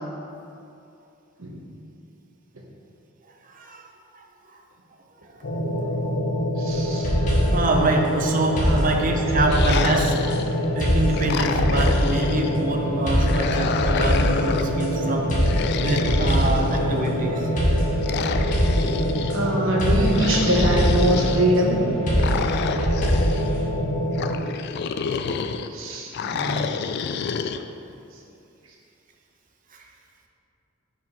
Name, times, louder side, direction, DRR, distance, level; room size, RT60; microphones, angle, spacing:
voice 1, 3.5-3.9 7.5-10.1 10.8-15.5 15.8-17.7 26.2-26.8, right 2 dB, 45° right, 2 dB, 0.7 m, -25 dB
sound 1, 5.4-24.4, equal, 80° left, 0.9 m, -26 dB
voice 2, 6.6-7.1 8.7-8.8 19.3-21.8 25.7-26.1, right 1 dB, 90° right, -1 dB, 1.1 m, -22 dB
sound 2, 6.7-7.8 8.6-10.4 10.8-12.3 13.1-14.9 15.3-16.8 17.6-19.4 19.8-21.2 22.1-23.6, equal, 40° left, 1.6 m, -23 dB
sound 3, 9.4-10.7 11.1-12.6 13.1-14.8 15.4-17.1 18.0-19.3 20.1-21.4 22.2-23.5 24.1-25.7 26.1-27.6, left 6 dB, 55° left, 0.3 m, -29 dB
5.1 x 5.1 x 5.2 m, 2.7 s
head